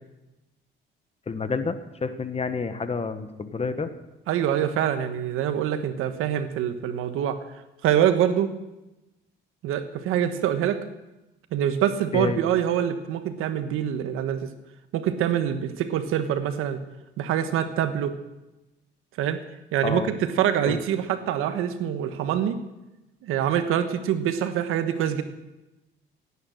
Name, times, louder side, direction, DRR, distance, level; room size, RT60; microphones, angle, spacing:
voice 1, 1.3-3.9 12.1-12.4 19.8-20.1 20.7-20.8, left 4 dB, 30° left, 10 dB, 1.3 m, -29 dB
voice 2, 4.3-7.4 7.8-8.5 9.6-10.8 11.5-14.5 14.9-16.8 17.2-18.1 19.2-19.4 19.7-22.6 23.2-25.2, right 10 dB, 85° right, 9 dB, 1.4 m, -25 dB
17.0 x 9.8 x 6.6 m, 1.0 s
cardioid pair, 85°, 21 cm